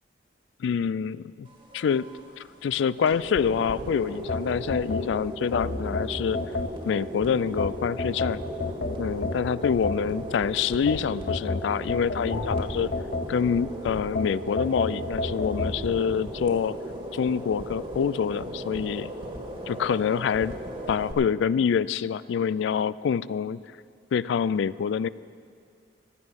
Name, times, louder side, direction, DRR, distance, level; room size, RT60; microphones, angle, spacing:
voice 1, 0.6-1.5 1.7-6.4 6.9-8.4 9.0-12.9 13.3-16.8 17.1-19.1 19.7-20.6 20.9-23.6 24.1-25.1, left 7 dB, 75° left, 19 dB, 0.3 m, -26 dB
sound 1, 1.5-21.1, equal, 30° right, 1.7 m, -37 dB
sound 2, 4.3-7.1 7.6-10.4 10.9-13.7 14.2-15.8, left 2 dB, 55° left, 0.8 m, -30 dB
15.5 x 13.0 x 5.3 m, 2.3 s
head